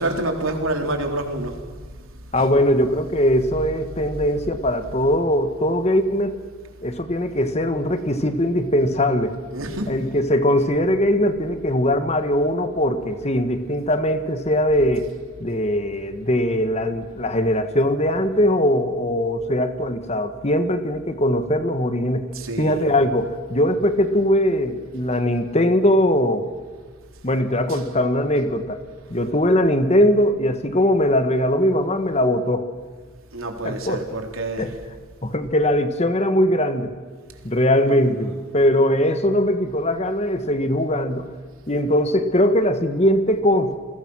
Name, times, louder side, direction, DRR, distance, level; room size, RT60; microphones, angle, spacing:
voice 1, 0.0-1.6 2.4-2.5 9.5-9.9 22.3-22.8 27.7-27.8 33.3-34.7 37.8-38.3, right 2 dB, 80° right, 4 dB, 3.5 m, -28 dB
voice 2, 2.3-6.4 6.8-9.4 9.9-15.1 15.4-22.3 22.6-26.5 27.2-28.8 29.1-32.7 33.6-34.0 34.6-34.7 35.2-36.9 37.4-41.3 41.7-43.7, left 1 dB, 30° left, 9 dB, 1.5 m, -20 dB
29.5 x 21.5 x 6.3 m, 1.5 s
head